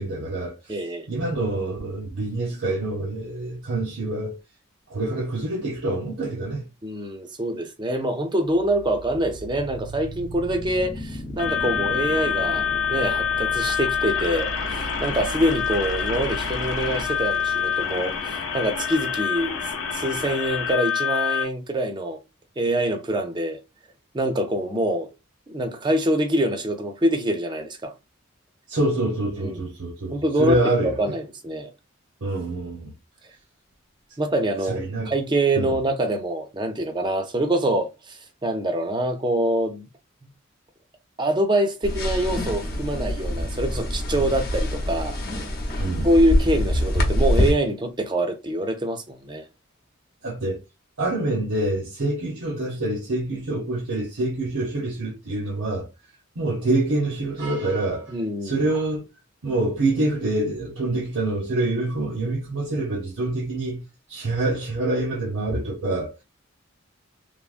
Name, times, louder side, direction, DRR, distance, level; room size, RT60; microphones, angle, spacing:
voice 1, 0.0-0.7 1.1-4.4 4.9-6.7 28.7-31.2 32.2-32.9 34.7-35.1 35.5-35.8 45.8-46.1 50.2-50.6 51.0-55.9 56.4-58.1 58.4-59.1 59.4-66.1, right 2 dB, 75° right, 0.7 m, -26 dB
voice 2, 0.7-1.1 6.8-19.6 19.9-22.2 22.6-23.6 24.1-25.1 25.5-27.9 29.4-29.6 30.1-31.7 34.2-39.9 40.2-40.3 41.2-45.2 46.0-49.4 58.1-58.7, right 1 dB, 20° right, 0.5 m, -25 dB
sound 1, 8.4-20.4, right 2 dB, 20° left, 0.6 m, -37 dB
sound 2, 11.4-21.4, left 8 dB, 80° left, 0.6 m, -26 dB
sound 3, 41.8-47.5, equal, 50° left, 0.8 m, -24 dB
3.3 x 2.0 x 2.4 m
head